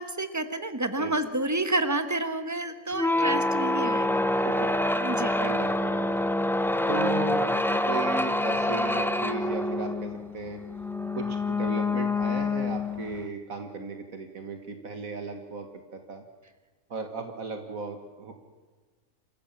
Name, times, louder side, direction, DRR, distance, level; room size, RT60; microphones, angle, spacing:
voice 1, 0.0-4.2 4.9-5.4, right 2 dB, 15° right, 10 dB, 1.2 m, -29 dB
sound 1, 2.9-13.3, left 1 dB, ahead, 0.5 m, -26 dB
voice 2, 5.4-6.4 6.8-7.5 7.8-10.6 11.1-16.2 16.9-18.4, right 4 dB, 75° right, 6 dB, 2.1 m, -36 dB
26.5 x 15.0 x 7.4 m, 1.4 s
omnidirectional pair, 1.5 m